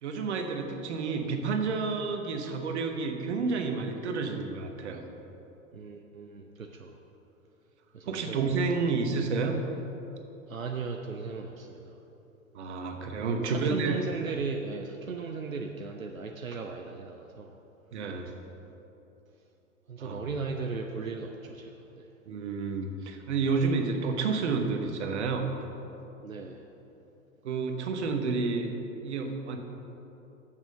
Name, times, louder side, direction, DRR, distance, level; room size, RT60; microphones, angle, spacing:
voice 1, 0.0-5.0 8.1-9.6 12.5-14.0 17.9-18.3 20.0-20.2 22.3-25.5 27.4-28.7 29.0-29.6, right 4 dB, 55° right, 5 dB, 1.0 m, -30 dB
voice 2, 5.7-6.9 7.9-8.7 10.5-11.9 13.5-17.5 19.9-22.1 26.2-26.6, right 4 dB, 85° right, 3 dB, 0.6 m, -37 dB
7.3 x 6.2 x 6.5 m, 3.0 s
figure-of-eight pair, 95°, 40 cm